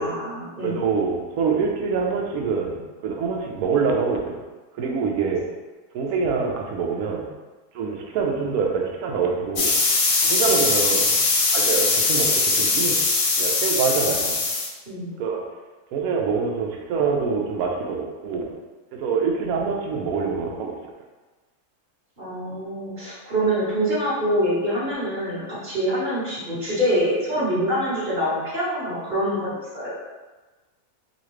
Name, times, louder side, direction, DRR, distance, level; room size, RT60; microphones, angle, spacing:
voice 1, 0.0-0.8 14.9-15.2 22.2-29.9, equal, 30° right, -10 dB, 1.4 m, -25 dB
voice 2, 0.6-4.4 4.8-5.4 5.9-7.3 7.7-9.8 10.2-11.2 11.5-13.0 13.4-14.4 15.2-15.4 15.9-18.6 18.9-20.8, right 5 dB, 70° right, 0 dB, 1.0 m, -25 dB
sound 1, 9.6-14.7, left 3 dB, 65° left, 0.9 m, -21 dB
4.0 x 2.4 x 3.1 m, 1.3 s
omnidirectional pair, 1.7 m